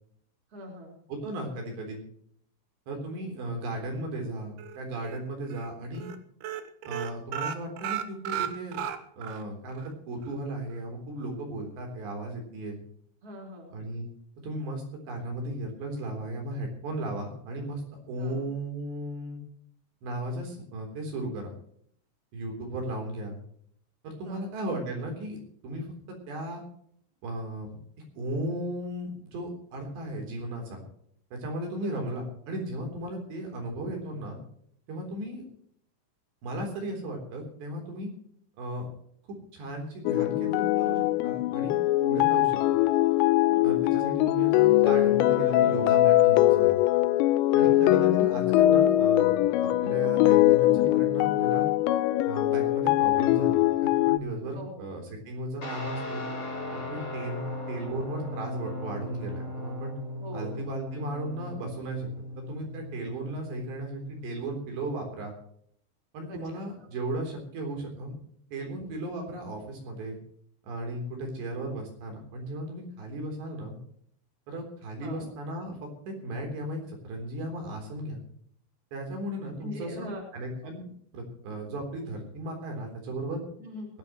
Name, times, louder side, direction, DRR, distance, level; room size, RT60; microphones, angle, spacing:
voice 1, 0.5-1.0 13.2-13.8 18.2-18.5 24.2-24.4 31.7-32.0 43.5-43.8 47.5-47.9 54.5-54.9 60.2-60.6 66.3-66.6 75.0-75.3 79.6-80.2 83.6-83.9, equal, 20° right, 0 dB, 4.6 m, -42 dB
voice 2, 1.1-2.0 2.9-6.1 6.8-8.8 9.2-12.8 13.7-14.1 14.4-17.8 18.1-19.4 20.0-21.5 22.3-23.4 24.0-25.4 25.6-26.6 27.2-27.8 28.2-30.8 31.3-34.4 34.9-35.4 36.4-38.1 38.6-38.9 39.3-42.6 43.6-46.8 47.5-49.3 49.6-51.7 52.2-56.2 56.9-59.9 60.3-62.1 62.4-65.3 66.1-68.1 68.5-70.2 70.6-73.8 74.5-78.2 78.9-80.9 81.1-83.4, right 1 dB, 65° right, 2 dB, 5.8 m, -36 dB
sound 1, 4.6-5.2 5.5-5.7 6.0-6.2 6.4-9.4 9.8-9.9 10.2-10.3, right 10 dB, 80° right, 3.6 m, -34 dB
sound 2, 40.1-54.2, left 15 dB, 80° left, 2.9 m, -22 dB
Guitar, 55.6-64.5, left 1 dB, 35° left, 5.3 m, -38 dB
21.0 x 15.5 x 3.1 m, 0.65 s
omnidirectional pair, 5.5 m